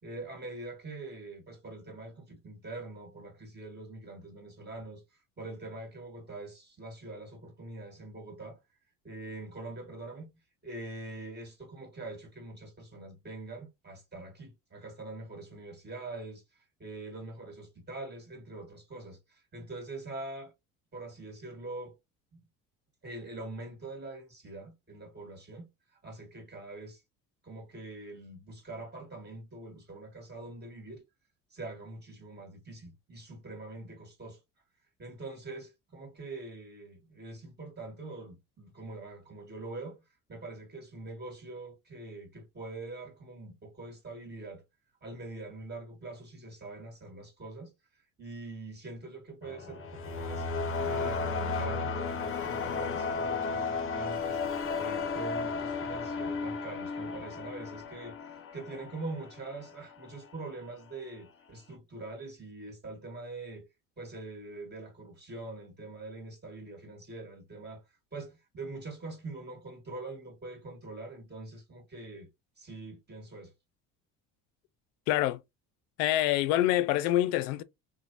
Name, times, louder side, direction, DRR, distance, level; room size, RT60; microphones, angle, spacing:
voice 1, 0.0-5.0 5.4-8.6 9.0-10.3 10.6-16.4 16.8-20.5 20.9-21.9 22.3-22.4 23.0-25.7 26.0-27.0 27.4-31.0 31.5-34.4 35.0-40.0 40.3-44.6 45.0-47.7 48.2-50.5 50.9-54.4 54.8-63.6 64.0-67.8 68.1-72.3 72.6-73.5, right 2 dB, 25° right, 2.0 m, -43 dB
sound 1, 49.4-59.7, left 4 dB, 35° left, 0.7 m, -34 dB
voice 2, 75.1-75.4 76.0-77.6, left 14 dB, 80° left, 0.5 m, -26 dB
2.9 x 2.2 x 2.7 m
hypercardioid pair, 70°, 38 cm